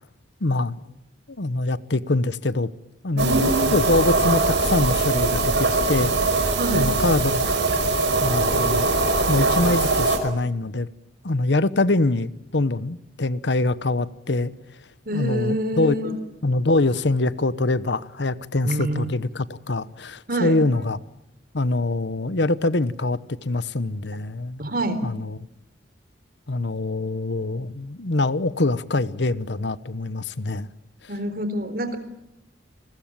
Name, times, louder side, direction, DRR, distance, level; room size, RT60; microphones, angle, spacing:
voice 1, 0.4-0.8 1.4-2.7 3.0-7.5 8.2-8.9 9.3-10.9 11.2-14.5 15.1-15.9 16.4-21.0 21.5-24.6 25.0-25.3 26.5-30.7, left 2 dB, 70° left, 1.0 m, -24 dB
voice 2, 3.1-3.8 6.6-6.9 15.1-16.1 18.6-19.1 20.3-20.8 24.6-25.0 31.1-32.0, right 1 dB, 50° right, 3.9 m, -26 dB
sound 1, 3.2-10.2, right 2 dB, 70° right, 5.2 m, -21 dB
29.0 x 21.0 x 8.9 m
head